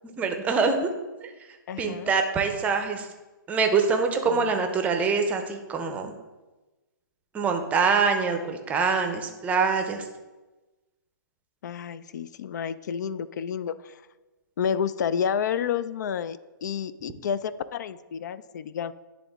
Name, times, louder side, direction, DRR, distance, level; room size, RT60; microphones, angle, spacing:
voice 1, 0.2-0.9 1.2-1.3 1.8-3.1 3.5-6.1 7.3-10.0, right 5 dB, 15° right, 5 dB, 0.6 m, -24 dB
voice 2, 1.7-2.1 4.3-4.7 11.6-14.0 14.6-18.9, left 7 dB, 55° left, 16 dB, 0.3 m, -30 dB
9.9 x 3.6 x 3.5 m, 1.2 s
hypercardioid pair, 140°, 11 cm